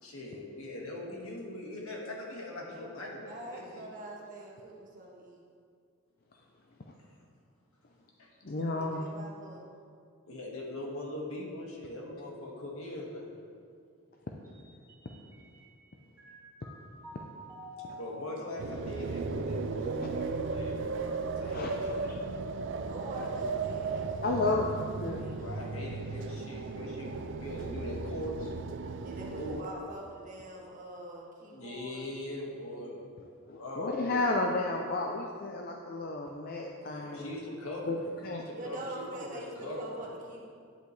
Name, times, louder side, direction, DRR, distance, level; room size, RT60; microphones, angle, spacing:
voice 1, 0.0-3.8 7.0-7.1 8.2-8.5 10.3-13.3 18.0-21.6 21.9-22.1 25.4-28.5 29.3-29.8 31.5-33.1 33.5-34.1 36.8-39.9, left 1 dB, 85° left, -2 dB, 1.7 m, -41 dB
voice 2, 3.3-5.4 8.6-9.6 22.9-24.6 24.8-25.8 29.0-32.0 38.5-40.4, right 1 dB, 40° right, -3 dB, 1.4 m, -44 dB
voice 3, 8.4-9.1 17.8-18.0 20.0-20.1 21.5-22.2 24.2-24.7 25.0-25.3 33.5-37.4 37.9-38.0 38.2-38.4, left 2 dB, 45° left, 1 dB, 0.5 m, -32 dB
Mallet percussion, 14.4-15.8 16.2-21.6, equal, 10° right, 2.1 m, -46 dB
sound 1, 18.6-29.6, right 4 dB, 60° right, 0.4 m, -36 dB
10.0 x 8.2 x 3.2 m, 2.2 s
head